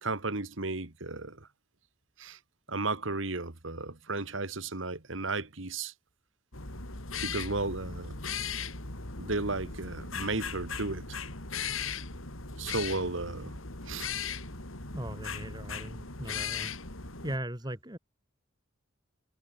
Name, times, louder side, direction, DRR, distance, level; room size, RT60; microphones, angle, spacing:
voice 1, 0.0-1.5 2.2-2.4 2.7-5.9 7.2-8.2 9.2-11.2 12.6-13.5 13.9-14.1, right 3 dB, 75° right, 2.1 m, -34 dB
sound 1, 6.5-17.4, left 5 dB, 90° left, 5.0 m, -38 dB
voice 2, 14.9-16.7 17.2-18.0, right 1 dB, 20° right, 4.2 m, -38 dB
head